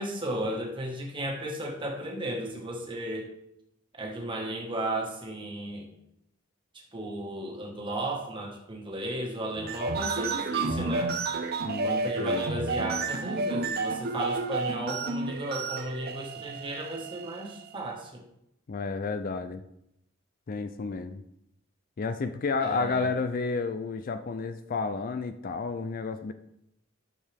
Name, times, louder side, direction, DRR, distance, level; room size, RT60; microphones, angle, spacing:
voice 1, 0.0-3.3 4.0-5.9 6.9-11.1 11.8-18.2 22.6-23.1, right 1 dB, 25° right, 0 dB, 1.5 m, -34 dB
sound 1, 9.6-17.8, right 3 dB, 50° right, 0.7 m, -31 dB
voice 2, 11.6-12.6 18.7-19.6 20.5-21.2 22.0-26.3, left 4 dB, 45° left, 10 dB, 0.4 m, -31 dB
11.5 x 6.5 x 3.5 m, 0.80 s
head